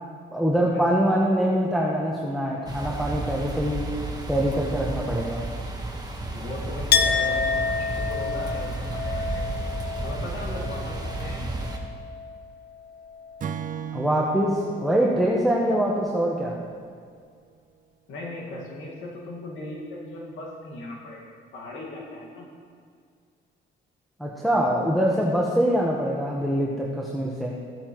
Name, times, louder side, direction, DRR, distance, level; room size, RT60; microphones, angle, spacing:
voice 1, 0.3-3.9 4.3-5.4 13.9-16.6 24.2-27.5, equal, ahead, -3 dB, 1.2 m, -24 dB
sound 1, 2.7-11.8, right 2 dB, 20° right, 1.4 m, -32 dB
voice 2, 6.3-9.4 10.0-11.6 18.1-22.5, left 2 dB, 80° left, -2 dB, 1.9 m, -38 dB
Chink clink, 6.9-12.4 12.7-13.6, left 6 dB, 55° left, 0.7 m, -28 dB
Acoustic guitar / Strum, 13.4-16.8, right 8 dB, 40° right, 0.5 m, -37 dB
15.0 x 8.7 x 3.1 m, 2.1 s
cardioid pair, 90°, 20 cm